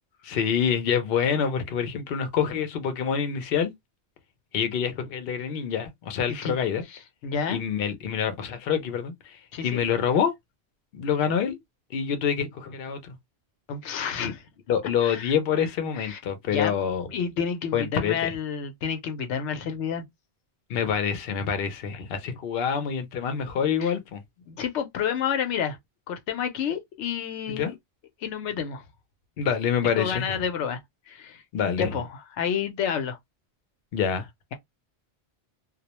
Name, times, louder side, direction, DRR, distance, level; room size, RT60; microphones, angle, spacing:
voice 1, 0.2-3.7 4.5-6.8 7.5-10.3 10.9-11.6 11.9-13.2 14.2-14.3 14.7-17.1 17.7-18.3 20.7-24.2 27.5-27.7 29.4-30.4 31.5-32.0 33.9-34.3, left 7 dB, 65° left, 0.8 m, -26 dB
voice 2, 7.2-7.6 9.5-9.8 13.7-14.4 15.0-15.3 16.0-16.2 16.5-16.8 17.1-20.0 23.8-23.9 24.5-25.8 26.1-27.8 28.2-28.8 29.8-30.8 31.1-31.4 31.8-33.2, left 7 dB, 90° left, 0.9 m, -29 dB
2.3 x 2.1 x 2.8 m
omnidirectional pair, 1.1 m